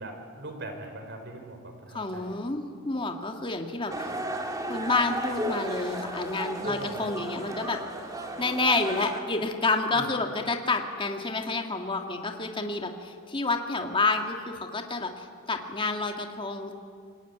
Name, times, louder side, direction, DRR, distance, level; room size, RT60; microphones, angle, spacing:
voice 1, 0.0-2.3 6.6-7.1 9.9-10.1, right 1 dB, 55° right, 5 dB, 4.1 m, -41 dB
voice 2, 1.9-4.1 4.7-7.8 8.4-16.7, left 3 dB, 25° left, 4 dB, 2.0 m, -29 dB
sound 1, 3.9-9.2, right 1 dB, 15° right, 2.4 m, -34 dB
26.5 x 21.0 x 9.4 m, 2.2 s
head